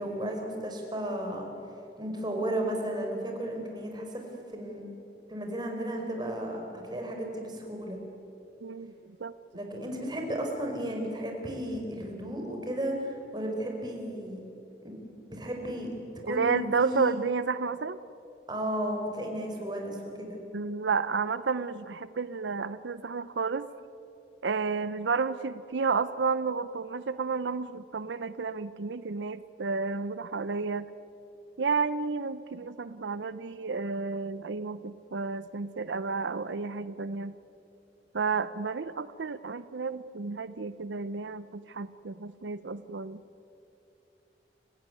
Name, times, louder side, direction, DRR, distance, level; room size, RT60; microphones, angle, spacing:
voice 1, 0.0-1.5 2.0-4.2 4.5-4.8 5.3-8.0 9.5-14.4 14.8-15.0 15.3-15.9 16.2-17.1 18.5-20.4, right 1 dB, 25° right, 2 dB, 4.6 m, -34 dB
voice 2, 8.6-8.9 9.2-9.3 16.2-18.0 20.5-23.7 24.4-30.9 31.6-37.3 38.1-43.2, right 4 dB, 90° right, 14 dB, 0.6 m, -31 dB
29.5 x 16.0 x 9.7 m, 2.8 s
head